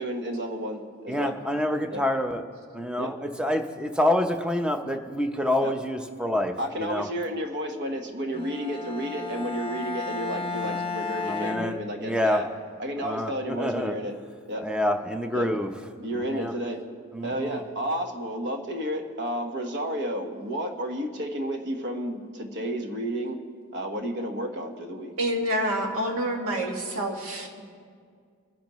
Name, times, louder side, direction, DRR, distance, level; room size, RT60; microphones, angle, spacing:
voice 1, 0.0-1.3 1.9-2.0 3.0-3.1 5.6-5.7 6.6-12.5 12.8-14.1 14.5-14.6 15.3-15.5 16.0-16.8 17.2-23.4 23.7-25.1, equal, 55° right, 4 dB, 1.3 m, -31 dB
voice 2, 1.1-2.4 2.7-7.1 10.6-10.8 11.2-12.4 13.0-14.0 14.6-15.7 16.1-16.5 17.1-17.6, left 1 dB, 5° right, 6 dB, 0.7 m, -27 dB
Bowed string instrument, 8.3-12.4, left 3 dB, 25° left, 0.9 m, -34 dB
voice 3, 25.2-27.6, right 1 dB, 75° right, 1 dB, 1.9 m, -28 dB
24.0 x 10.5 x 3.1 m, 2.1 s
head